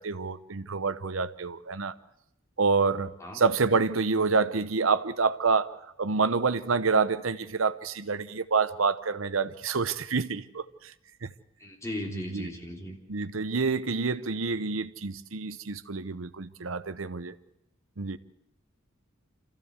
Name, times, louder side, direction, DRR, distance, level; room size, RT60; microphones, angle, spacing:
voice 1, 0.0-1.9 2.6-5.7 6.0-10.9 11.2-11.3 12.1-12.5 13.1-17.3 18.0-18.2, right 4 dB, 80° right, 0.9 m, -27 dB
voice 2, 11.6-12.9 13.9-14.0, left 1 dB, 15° left, 3.2 m, -37 dB
26.5 x 15.0 x 8.1 m
head